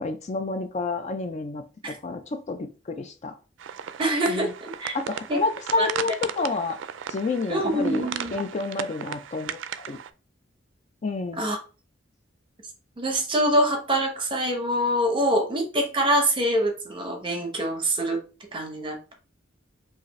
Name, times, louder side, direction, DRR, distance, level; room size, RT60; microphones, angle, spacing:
voice 1, 0.0-3.3 4.3-4.5 4.9-6.8 7.1-8.1 8.3-9.6 9.9-10.0 11.0-11.5, left 3 dB, 35° left, 0.4 m, -29 dB
sound 1, 3.6-10.1, right 8 dB, 80° right, 0.4 m, -36 dB
voice 2, 4.0-4.9 5.3-5.4 5.8-5.9 7.5-8.4 11.4-11.6 13.0-18.2 18.5-19.1, right 1 dB, 25° right, 0.9 m, -25 dB
5.0 x 2.5 x 3.1 m
head